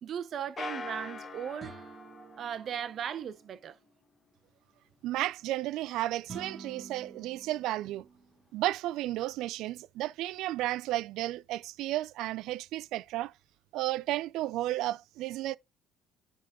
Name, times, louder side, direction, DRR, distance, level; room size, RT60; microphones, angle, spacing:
voice 1, 0.0-1.7 2.4-3.8, right 8 dB, 50° right, 0.7 m, -37 dB
sound 1, 0.6-3.3, left 2 dB, 30° left, 1.0 m, -43 dB
sound 2, 1.6-3.6 6.3-8.4, right 4 dB, 25° right, 2.2 m, -49 dB
voice 2, 5.0-8.1 8.5-13.3 13.7-15.6, right 15 dB, 75° right, 0.3 m, -33 dB
10.5 x 3.7 x 3.6 m
cardioid pair, 110°, 0 cm